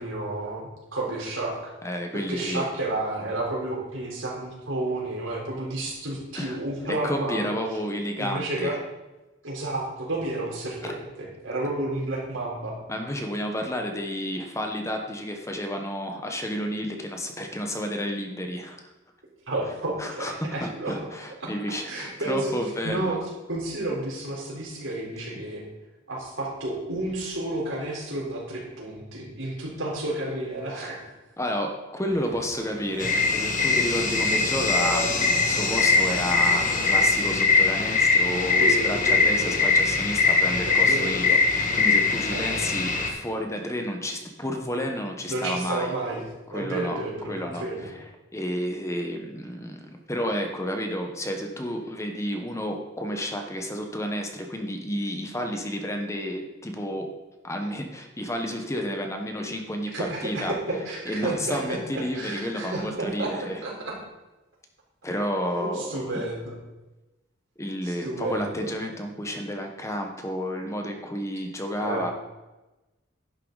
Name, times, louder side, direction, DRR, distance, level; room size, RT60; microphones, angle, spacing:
voice 1, 0.0-1.7 2.3-7.5 8.2-8.8 9.4-12.7 19.5-21.0 21.4-21.5 21.9-22.5 22.8-23.2 23.5-25.7 26.1-31.0 38.6-39.6 40.6-41.2 42.3-42.6 45.3-46.2 46.5-47.9 59.9-63.3 63.6-63.9 65.6-66.5 67.8-68.7 71.8-72.1, right 2 dB, 85° right, -3 dB, 3.9 m, -31 dB
voice 2, 1.8-2.7 6.3-6.6 6.9-8.8 10.8-11.0 12.9-18.8 20.0-23.2 30.8-30.9 31.4-45.9 46.5-47.0 47.3-57.1 57.4-60.6 61.1-63.6 65.0-66.2 67.6-72.1, equal, 15° left, 4 dB, 1.1 m, -31 dB
sound 1, 32.1-37.1, right 1 dB, 70° right, 2.7 m, -37 dB
sound 2, 33.0-43.1, left 4 dB, 40° left, 1.5 m, -22 dB
11.0 x 9.8 x 4.0 m, 1.0 s
head